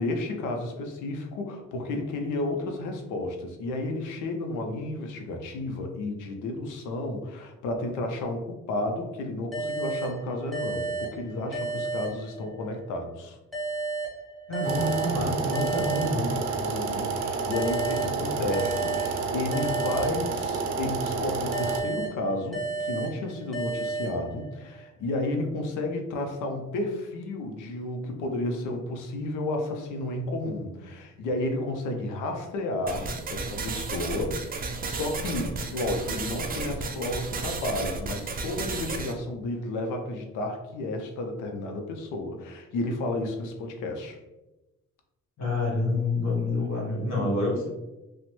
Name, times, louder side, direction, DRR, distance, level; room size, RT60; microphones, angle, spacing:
voice 1, 0.0-13.4 16.6-44.2, left 2 dB, 90° left, 3 dB, 0.6 m, -32 dB
sound 1, 9.5-12.9 13.5-16.8 17.5-20.9 21.5-24.8, right 3 dB, ahead, 1.2 m, -34 dB
voice 2, 14.5-16.3 45.4-47.7, left 2 dB, 65° left, -4 dB, 1.2 m, -27 dB
sound 2, 14.6-21.8, right 4 dB, 85° right, 0.5 m, -30 dB
sound 3, 32.9-39.1, right 4 dB, 30° right, 0.4 m, -33 dB
3.0 x 2.1 x 3.0 m, 1.0 s
cardioid pair, 90°, 30 cm